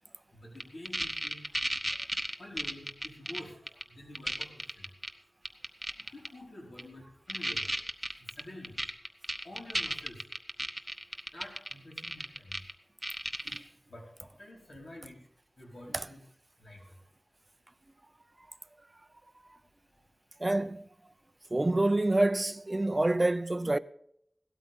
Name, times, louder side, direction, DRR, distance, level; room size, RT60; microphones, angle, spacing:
voice 1, 0.3-1.4 2.4-3.6 3.9-4.9 6.1-7.7 8.3-8.8 9.4-10.2 11.3-12.6 13.9-15.2 15.6-16.2 16.6-16.9, left 1 dB, 65° left, 4.9 m, -48 dB
sound 1, 0.6-3.4 3.7-3.8 4.1-5.1 5.4-6.3 6.8-6.9 7.3-12.7 13.0-13.6, right 1 dB, 10° right, 1.2 m, -33 dB
voice 2, 20.4-20.8 21.5-23.8, right 2 dB, 30° right, 0.6 m, -27 dB
17.0 x 13.0 x 3.7 m
wide cardioid pair, 80°, 0 cm